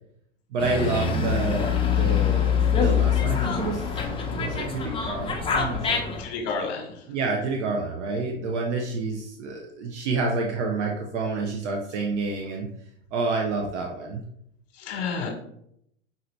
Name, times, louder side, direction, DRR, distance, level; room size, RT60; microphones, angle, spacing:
voice 1, 0.5-6.1 7.1-12.7 13.1-14.2, right 3 dB, 70° right, 0 dB, 0.9 m, -29 dB
Dog, 0.6-6.2, left 7 dB, 15° left, 0.7 m, -24 dB
voice 2, 5.9-7.0 14.7-15.4, left 4 dB, 55° left, 1 dB, 1.1 m, -31 dB
5.6 x 2.7 x 3.1 m, 0.73 s
hypercardioid pair, 110°, 36 cm